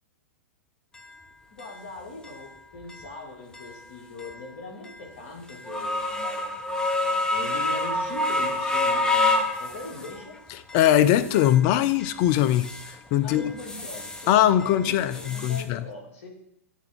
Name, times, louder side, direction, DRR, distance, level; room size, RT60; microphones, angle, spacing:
sound 1, 0.9-1.0 1.6-1.7 2.2-2.3 2.9-3.1 3.5-3.7 4.2-4.3 4.9-5.0 5.5-10.2 10.7-11.6 12.0-12.9 13.3-14.3 14.6-15.6, left 2 dB, 10° left, 0.7 m, -28 dB
voice 1, 1.5-10.4 13.2-16.3, left 2 dB, 60° left, 0 dB, 2.0 m, -41 dB
voice 2, 10.7-13.5 14.3-15.9, left 11 dB, 45° left, 14 dB, 0.4 m, -21 dB
9.2 x 3.4 x 3.5 m, 0.77 s
hypercardioid pair, 105°, 8 cm